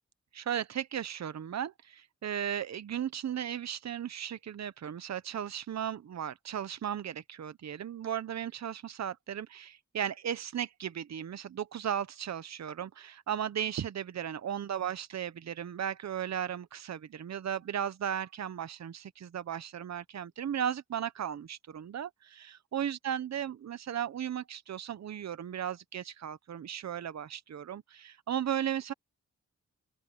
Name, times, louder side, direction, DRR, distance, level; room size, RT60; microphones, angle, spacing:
voice 1, 0.3-28.9, right 9 dB, 65° right, 0.9 m, -36 dB
open air
cardioid pair, 75°, 29 cm